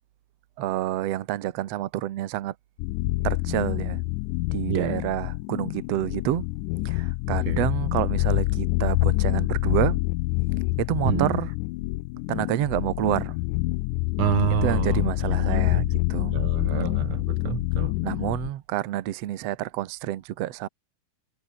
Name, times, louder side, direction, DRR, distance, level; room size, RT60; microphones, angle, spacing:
voice 1, 0.6-2.6 3.2-4.0 4.5-6.4 6.9-10.0 10.8-11.5 12.3-13.4 14.5-16.4 18.0-20.7, right 13 dB, 65° right, 1.9 m, -28 dB
sound 1, 2.8-18.5, left 21 dB, 80° left, 2.0 m, -26 dB
voice 2, 4.7-5.0 7.5-7.7 11.1-11.4 14.2-15.8 16.3-17.9, right 12 dB, 85° right, 1.2 m, -28 dB
omnidirectional pair, 3.7 m